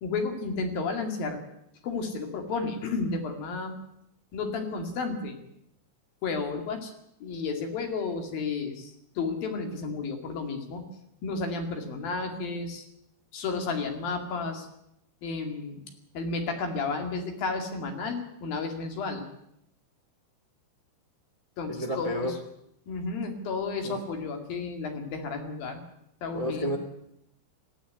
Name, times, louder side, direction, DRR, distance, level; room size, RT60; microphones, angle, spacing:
voice 1, 0.0-1.5 1.8-3.8 4.3-5.4 6.2-6.9 7.2-10.8 11.2-12.8 13.3-14.7 15.2-15.8 16.1-19.2 21.6-22.4 22.9-25.8 26.2-26.7, left 4 dB, 60° left, 4 dB, 4.0 m, -32 dB
voice 2, 21.7-22.3 23.8-23.9 26.3-26.8, equal, 30° right, 6 dB, 0.6 m, -30 dB
19.0 x 14.5 x 9.6 m, 0.77 s
omnidirectional pair, 5.0 m